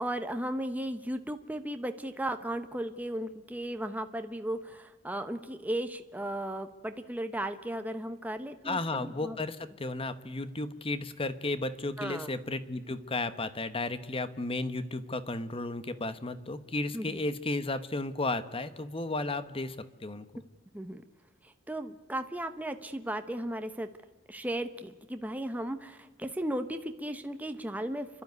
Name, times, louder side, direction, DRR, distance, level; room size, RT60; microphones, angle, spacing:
voice 1, 0.0-9.4 12.0-12.3 16.9-17.2 20.7-21.0 21.4-23.9 24.3-28.2, right 1 dB, 10° right, 7 dB, 0.9 m, -35 dB
voice 2, 8.6-20.3, left 2 dB, 30° left, 12 dB, 1.1 m, -34 dB
30.0 x 12.0 x 9.4 m, 1.3 s
head